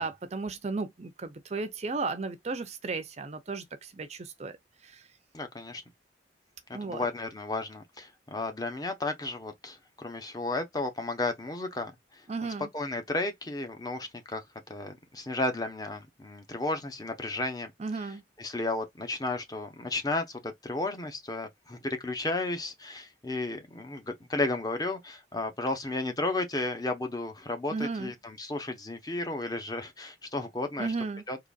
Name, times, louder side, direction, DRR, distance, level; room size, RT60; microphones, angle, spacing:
voice 1, 0.0-4.6 4.8-5.0 6.7-7.1 12.3-12.7 17.8-18.2 27.7-28.1 30.8-31.2, right 3 dB, 35° right, 0.5 m, -34 dB
voice 2, 5.3-5.8 6.7-12.2 12.7-14.4 14.7-18.1 18.4-30.9 31.3-31.4, left 2 dB, 20° left, 0.8 m, -33 dB
3.9 x 3.0 x 2.4 m
head